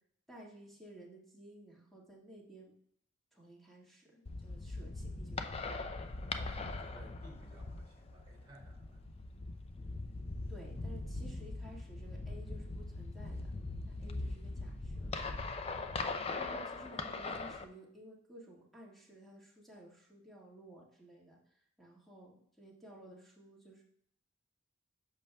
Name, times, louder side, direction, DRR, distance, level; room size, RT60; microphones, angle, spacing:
voice 1, 0.3-2.7 3.3-5.8 10.5-13.5 14.0-15.1 16.1-21.4 21.8-23.8, equal, ahead, -4 dB, 1.6 m, -55 dB
sound 1, 4.2-17.6, left 3 dB, 30° left, 0.4 m, -41 dB
voice 2, 6.3-9.0, right 1 dB, 25° right, -1 dB, 1.9 m, -58 dB
10.5 x 6.6 x 2.2 m, 0.67 s
head